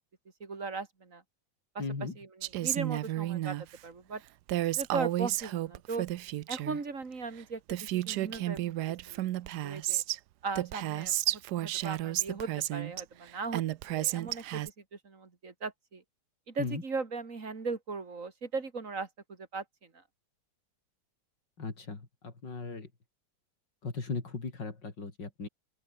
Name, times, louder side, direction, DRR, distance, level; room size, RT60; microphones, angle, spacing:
voice 1, 0.4-1.2 1.7-3.6 3.8-4.2 4.7-6.1 6.5-9.3 9.6-10.0 10.4-16.0 16.5-20.0, right 4 dB, 45° right, 2.9 m, -38 dB
voice 2, 1.8-2.2 16.6-16.8 21.6-22.9 23.8-25.5, left 4 dB, 70° left, 4.5 m, -37 dB
Female speech woman speaking, 2.4-3.6 4.5-6.8 7.4-7.5 7.7-10.2 10.6-13.0 13.5-14.7, right 14 dB, 70° right, 1.1 m, -32 dB
open air
omnidirectional pair, 2.0 m